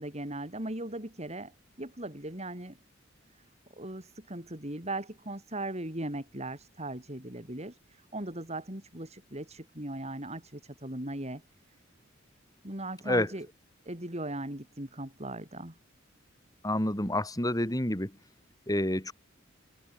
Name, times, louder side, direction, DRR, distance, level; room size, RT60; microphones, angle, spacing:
voice 1, 0.0-1.5 1.8-2.8 3.8-11.4 12.6-13.5 13.9-15.7, right 1 dB, 35° right, 6.2 m, -38 dB
voice 2, 16.6-18.1 18.7-19.1, left 1 dB, 20° left, 4.8 m, -28 dB
head